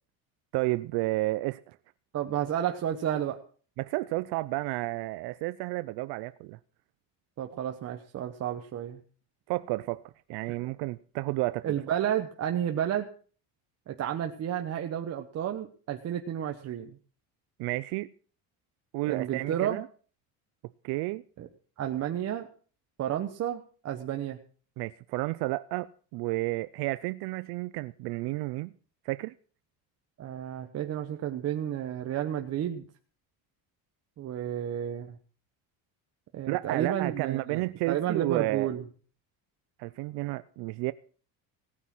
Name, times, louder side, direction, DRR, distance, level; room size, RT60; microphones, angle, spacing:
voice 1, 0.5-1.8 3.8-6.6 9.5-10.0 10.3-11.7 17.6-18.1 18.9-19.9 20.8-21.2 24.8-28.7 29.0-29.3 36.5-38.7 39.8-40.9, right 20 dB, 80° right, 0.7 m, -31 dB
voice 2, 2.1-3.4 7.4-9.0 10.6-10.7 11.6-13.1 13.9-17.0 19.1-19.8 21.4-21.5 21.8-22.5 23.0-24.4 30.2-32.8 34.2-35.2 36.3-38.8, right 10 dB, 40° right, 1.1 m, -31 dB
17.5 x 9.8 x 6.1 m
cardioid pair, 170°, 39 cm